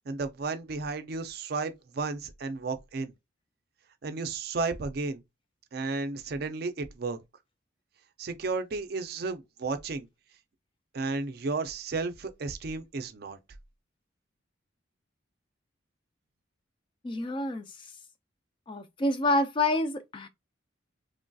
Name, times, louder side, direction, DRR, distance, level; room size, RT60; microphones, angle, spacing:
voice 1, 0.1-3.1 4.0-5.2 5.7-7.2 8.2-10.1 10.9-13.4, right 3 dB, 50° right, 0.4 m, -33 dB
voice 2, 17.0-17.9 18.7-20.3, left 2 dB, 25° left, 0.3 m, -28 dB
3.1 x 2.6 x 2.2 m
head